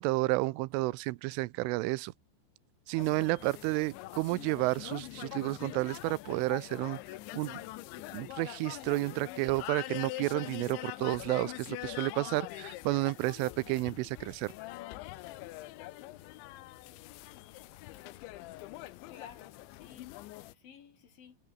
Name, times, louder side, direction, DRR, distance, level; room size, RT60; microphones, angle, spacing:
voice 1, 0.0-2.1 2.9-7.0 7.3-7.6 8.1-14.5, right 21 dB, 90° right, 3.2 m, -31 dB
sound 1, 3.0-20.5, left 17 dB, 80° left, 3.2 m, -44 dB
voice 2, 18.9-20.1 20.5-21.4, left 8 dB, 55° left, 3.7 m, -54 dB
omnidirectional pair, 5.6 m